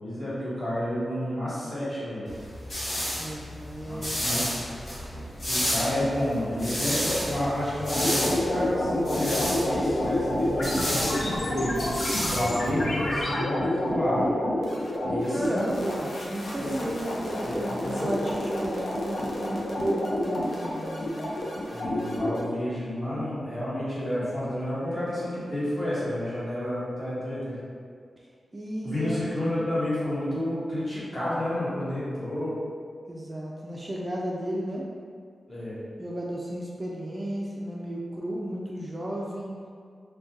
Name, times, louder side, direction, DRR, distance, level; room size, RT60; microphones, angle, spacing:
voice 1, 0.0-2.3 3.9-4.5 5.5-11.8 12.3-14.2 15.1-15.7 16.6-16.9 17.4-18.1 21.7-27.5 28.8-32.5 35.5-35.8, left 1 dB, 30° left, -10 dB, 1.3 m, -30 dB
sound 1, 2.3-13.2, equal, 50° left, 1.3 m, -32 dB
voice 2, 3.2-4.4 15.3-21.3 28.5-29.2 33.1-34.9 36.0-39.5, right 1 dB, 25° right, -3 dB, 0.3 m, -33 dB
sound 2, 7.8-22.4, left 1 dB, 80° left, 0.5 m, -29 dB
2.6 x 2.2 x 3.6 m, 2.1 s
wide cardioid pair, 95°, 0 cm